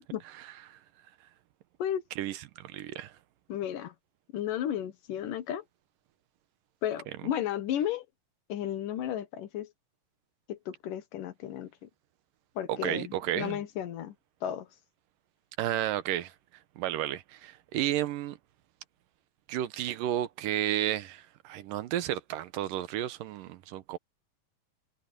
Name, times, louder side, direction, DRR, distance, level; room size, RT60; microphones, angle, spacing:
voice 1, 2.2-3.1 12.7-13.6 15.6-16.3 16.8-18.4 19.5-24.0, right 12 dB, 90° right, 2.7 m, -32 dB
voice 2, 3.5-3.9 4.3-5.6 6.8-8.1 8.5-9.7 10.5-11.9 12.6-14.2 14.4-14.7, left 10 dB, 80° left, 3.0 m, -33 dB
omnidirectional pair, 3.8 m